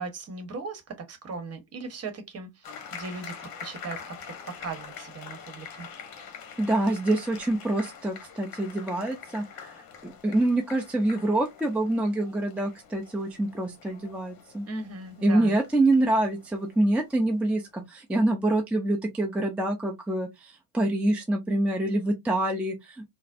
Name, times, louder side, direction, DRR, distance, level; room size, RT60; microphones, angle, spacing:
voice 1, 0.0-4.2 4.5-5.9 14.7-15.6, right 4 dB, 30° right, 1.1 m, -38 dB
sound 1, 2.6-17.6, left 7 dB, 45° left, 1.1 m, -45 dB
voice 2, 6.6-9.7 10.0-14.7 15.2-23.0, right 1 dB, 5° right, 0.5 m, -26 dB
3.9 x 2.1 x 2.6 m
hypercardioid pair, 75°, 49 cm